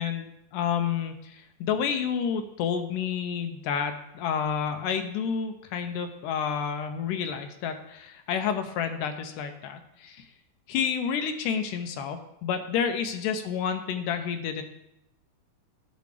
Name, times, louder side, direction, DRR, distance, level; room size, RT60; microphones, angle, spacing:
voice 1, 0.0-10.3 10.7-14.6, left 7 dB, 85° left, 7 dB, 2.2 m, -30 dB
10.5 x 6.7 x 3.2 m, 0.85 s
omnidirectional pair, 3.7 m